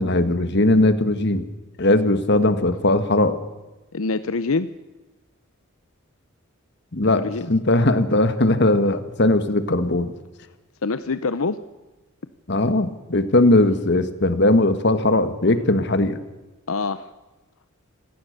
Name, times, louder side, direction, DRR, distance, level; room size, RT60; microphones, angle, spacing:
voice 1, 0.0-1.5 1.8-3.4 6.9-7.2 7.5-10.1 12.5-16.2, left 2 dB, 55° left, 10 dB, 1.7 m, -19 dB
voice 2, 3.9-4.7 7.1-7.5 10.8-11.6 16.7-17.1, left 4 dB, 85° left, 13 dB, 0.8 m, -25 dB
27.0 x 17.5 x 6.7 m, 1.1 s
head